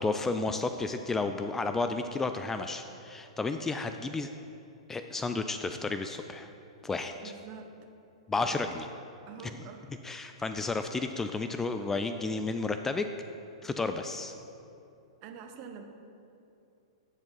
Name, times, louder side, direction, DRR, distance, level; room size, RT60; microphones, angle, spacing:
voice 1, 0.0-4.3 4.9-6.5 6.8-7.3 8.3-8.9 9.4-9.5 10.0-13.1 13.6-14.3, left 3 dB, 10° left, 7 dB, 0.3 m, -32 dB
voice 2, 7.2-7.7 8.3-8.5 9.3-9.9 15.2-15.8, right 7 dB, 40° right, 5 dB, 0.9 m, -46 dB
9.8 x 4.7 x 5.6 m, 2.7 s
figure-of-eight pair, 105°, 3 cm